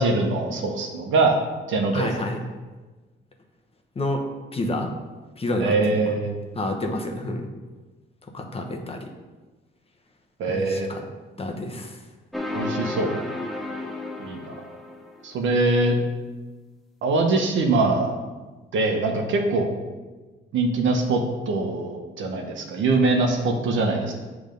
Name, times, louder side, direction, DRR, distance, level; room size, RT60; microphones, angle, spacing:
voice 1, 0.0-1.4 1.7-2.1 5.6-6.3 10.4-10.9 12.5-13.2 14.2-14.5 15.2-16.0 17.0-18.1 18.7-19.7 20.5-24.1, right 3 dB, 75° right, 2 dB, 1.1 m, -23 dB
voice 2, 1.9-2.4 4.0-4.2 4.5-4.9 5.4-6.0 6.5-7.5 8.3-9.1 10.5-11.0 11.4-12.0, left 1 dB, 30° left, 3 dB, 1.0 m, -28 dB
sound 1, 12.3-15.3, left 2 dB, ahead, 0.7 m, -32 dB
7.3 x 3.5 x 5.2 m, 1.3 s
cardioid pair, 90°, 20 cm